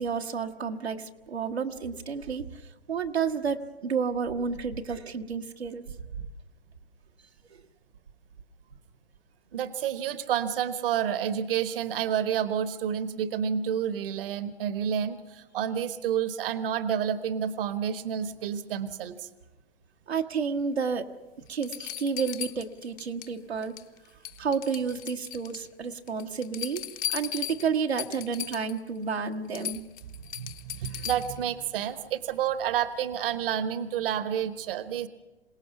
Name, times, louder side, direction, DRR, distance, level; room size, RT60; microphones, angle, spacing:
voice 1, 0.0-6.3 7.5-7.6 20.1-21.1 21.5-23.8 24.4-26.8 27.1-29.8 30.9-31.0, right 6 dB, 85° right, 3 dB, 1.4 m, -31 dB
voice 2, 9.5-19.3 30.3-35.1, right 9 dB, 60° right, 13 dB, 1.2 m, -29 dB
sound 1, 20.9-21.0 21.6-23.3 23.6-24.0 24.2-25.7 26.1-28.8 29.2-29.3 29.5-31.4 33.1-33.2, left 11 dB, 25° left, 0.8 m, -37 dB
27.5 x 18.0 x 5.9 m, 1.1 s
figure-of-eight pair, 105°, 31 cm